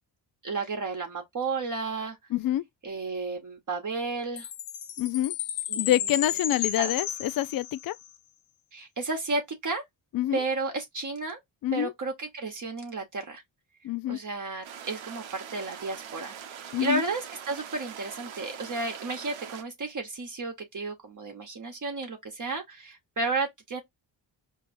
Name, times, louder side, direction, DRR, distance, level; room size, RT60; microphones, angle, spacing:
voice 1, 0.4-2.2 2.8-4.5 5.7-5.9 6.8-6.9 8.7-9.8 10.3-11.4 11.7-13.4 14.1-16.4 16.8-23.8, right 3 dB, 40° right, 1.2 m, -32 dB
voice 2, 2.3-2.6 5.0-5.3 5.8-8.0 10.1-10.4 11.6-11.9 13.8-14.2 16.7-17.0, left 13 dB, 50° left, 0.4 m, -27 dB
Chime, 4.4-8.1, left 10 dB, 90° left, 0.8 m, -33 dB
sound 1, 14.6-19.6, right 8 dB, 90° right, 0.8 m, -43 dB
4.6 x 2.9 x 2.6 m
cardioid pair, 70°, 45 cm